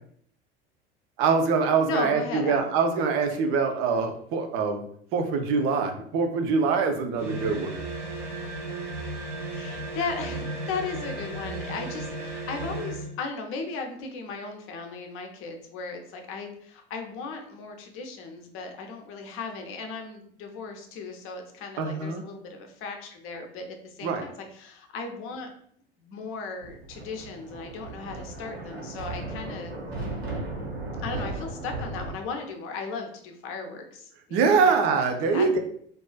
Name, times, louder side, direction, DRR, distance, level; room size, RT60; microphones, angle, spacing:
voice 1, 1.2-4.8 5.1-7.8 21.8-22.2 24.0-24.2 34.3-35.6, right 5 dB, 45° right, 5 dB, 0.5 m, -24 dB
voice 2, 1.9-2.6 3.3-3.4 9.5-25.5 26.0-29.7 31.0-34.7 35.3-35.5, left 4 dB, 45° left, 4 dB, 0.6 m, -36 dB
sound 1, 7.2-13.1, right 2 dB, 10° right, 0.7 m, -35 dB
Thunder, 26.6-32.1, right 2 dB, 85° right, 0.7 m, -36 dB
2.3 x 2.3 x 2.2 m, 0.63 s
figure-of-eight pair, 75°, 31 cm